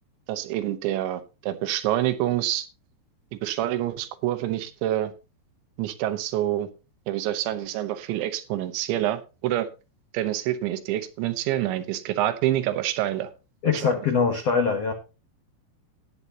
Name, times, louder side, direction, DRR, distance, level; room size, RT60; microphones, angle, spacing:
voice 1, 0.3-2.7 3.3-5.1 5.8-6.7 7.1-9.7 10.1-13.3 13.7-13.9, right 13 dB, 80° right, 9 dB, 3.3 m, -27 dB
voice 2, 13.6-14.9, left 5 dB, 70° left, 3 dB, 1.5 m, -23 dB
18.0 x 8.0 x 2.8 m, 0.30 s
omnidirectional pair, 5.3 m